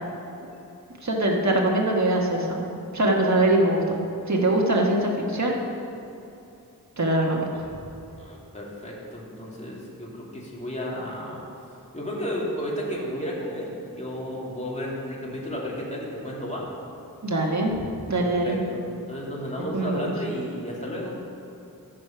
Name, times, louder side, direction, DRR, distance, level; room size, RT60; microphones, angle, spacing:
voice 1, 1.0-2.7 2.9-3.8 4.3-5.6 7.0-7.6 17.2-17.7 18.1-18.6 19.7-20.0, right 1 dB, 50° right, -1 dB, 1.4 m, -22 dB
voice 2, 8.2-11.4 11.9-16.7 18.2-18.8 19.1-21.1, equal, 20° left, -5 dB, 2.7 m, -33 dB
14.0 x 5.0 x 5.8 m, 2.8 s
wide cardioid pair, 45°, 37 cm